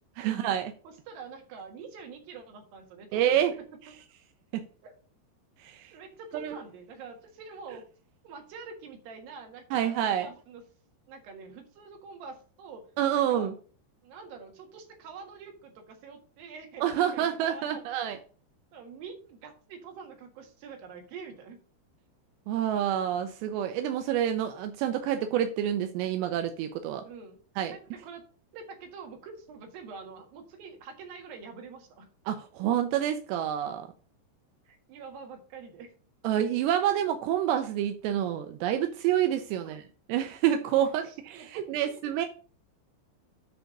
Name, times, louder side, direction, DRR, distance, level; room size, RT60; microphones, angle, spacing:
voice 1, 0.2-0.7 3.1-3.6 5.6-5.9 6.3-6.6 9.7-10.3 13.0-13.6 16.8-18.2 22.5-27.0 27.6-27.8 32.3-33.9 36.2-39.8 40.1-42.3, right 10 dB, 85° right, 2.7 m, -28 dB
voice 2, 0.8-3.4 3.9-4.0 4.8-4.9 5.9-7.8 8.2-10.0 10.2-10.6 11.1-12.9 13.1-13.5 14.0-17.8 18.7-21.6 27.0-27.4 27.7-28.2 28.5-32.1 34.6-35.9 39.6-39.8 41.1-42.0, right 5 dB, 60° right, 3.0 m, -46 dB
10.0 x 3.5 x 6.6 m
omnidirectional pair, 5.2 m